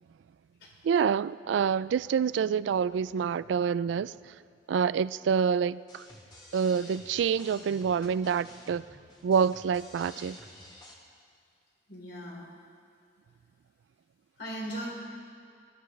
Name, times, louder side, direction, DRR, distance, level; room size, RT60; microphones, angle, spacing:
voice 1, 0.8-4.1 4.7-6.0 6.5-8.8 9.2-10.4, right 7 dB, 80° right, 18 dB, 0.3 m, -27 dB
sound 1, 5.9-10.9, left 1 dB, 25° left, 1.7 m, -50 dB
voice 2, 11.9-12.5 14.4-14.9, equal, 65° left, -4 dB, 3.8 m, -38 dB
21.5 x 13.5 x 3.3 m, 2.2 s
head